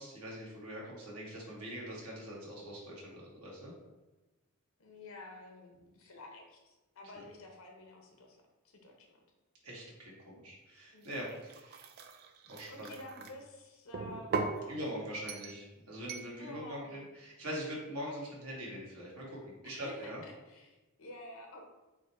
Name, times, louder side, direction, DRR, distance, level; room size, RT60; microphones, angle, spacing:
voice 1, 0.0-3.7 9.6-11.9 12.5-12.9 14.7-20.2, equal, 90° right, -4 dB, 1.2 m, -43 dB
voice 2, 4.8-8.4 8.6-9.1 10.9-11.2 12.7-15.1 16.4-17.1 18.1-18.3 19.6-21.6, left 1 dB, 70° left, 1 dB, 0.7 m, -50 dB
sound 1, 11.0-13.3 13.9-14.6 15.3-15.6 16.1-16.3, right 4 dB, 45° right, 0.3 m, -39 dB
4.9 x 2.0 x 4.1 m, 1.1 s
head